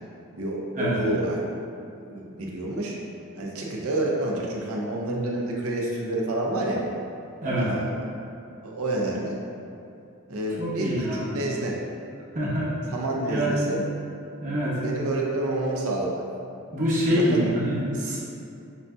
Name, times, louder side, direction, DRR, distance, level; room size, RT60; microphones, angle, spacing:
voice 1, 0.4-1.4 2.0-3.0 3.4-6.8 7.5-7.9 8.6-9.4 10.3-11.8 12.9-13.8 14.8-16.3 17.2-17.4, right 1 dB, 70° right, -2 dB, 0.6 m, -28 dB
voice 2, 7.4-7.7 10.6-11.2 12.3-12.7 13.3-13.7 14.4-14.8 16.7-18.2, equal, 35° right, -7 dB, 0.9 m, -25 dB
6.2 x 2.6 x 2.3 m, 2.6 s
head